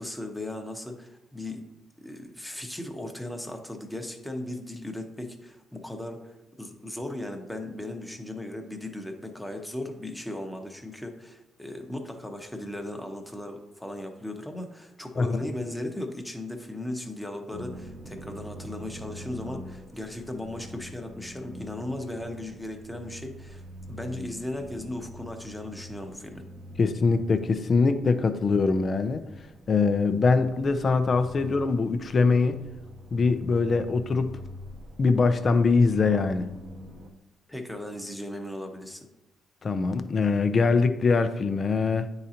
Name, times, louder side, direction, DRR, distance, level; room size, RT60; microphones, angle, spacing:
voice 1, 0.0-1.6 2.0-23.6 23.9-26.4 37.5-39.1, left 1 dB, 5° left, 0.9 m, -37 dB
sound 1, 17.5-37.1, equal, 50° right, 0.8 m, -44 dB
voice 2, 26.8-29.2 29.7-32.6 33.1-34.4 35.0-36.5 39.6-42.1, left 4 dB, 40° left, 0.5 m, -23 dB
9.4 x 3.8 x 2.8 m
cardioid pair, 90°, 0 cm